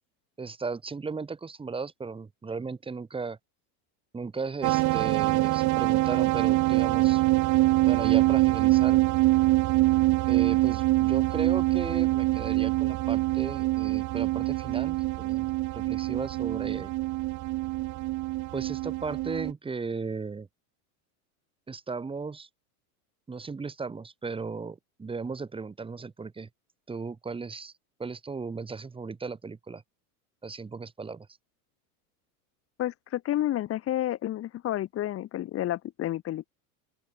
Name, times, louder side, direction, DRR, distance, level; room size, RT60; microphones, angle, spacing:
voice 1, 0.4-3.4 4.1-7.2 7.8-9.0 10.3-16.9 18.5-20.5 21.7-22.5 23.3-26.5 26.9-27.7 28.0-29.8 30.4-31.3, right 4 dB, 10° right, 7.6 m, -36 dB
sound 1, 4.6-19.5, right 19 dB, 40° right, 4.8 m, -24 dB
voice 2, 32.8-36.5, left 13 dB, 30° left, 4.4 m, -30 dB
open air
supercardioid pair, 155°, 45 cm